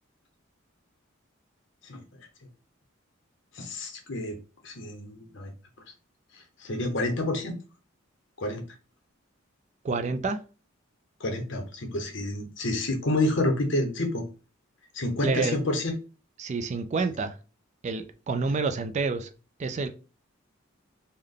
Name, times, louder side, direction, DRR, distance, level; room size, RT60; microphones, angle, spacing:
voice 1, 3.5-4.4 4.6-5.5 6.3-7.6 8.4-8.6 11.2-14.2 14.9-15.9, left 1 dB, 65° left, 0.9 m, -29 dB
voice 2, 9.8-10.4 15.2-15.6 16.4-17.3 17.8-19.3 19.6-19.9, right 4 dB, 35° right, 0.3 m, -28 dB
3.4 x 2.1 x 3.7 m
head